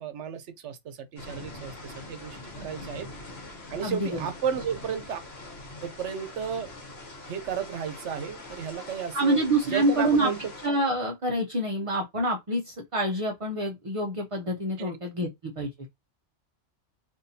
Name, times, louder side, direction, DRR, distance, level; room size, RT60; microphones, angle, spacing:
voice 1, 0.0-3.1 3.7-5.2 5.8-6.7 7.2-9.4 9.7-10.4 14.8-14.9, right 7 dB, 75° right, 1.0 m, -33 dB
sound 1, 1.2-10.7, left 2 dB, 60° left, 1.3 m, -43 dB
voice 2, 3.8-4.2 9.1-10.3 10.6-15.9, right 1 dB, 35° right, 0.6 m, -27 dB
4.1 x 2.7 x 2.7 m
omnidirectional pair, 1.2 m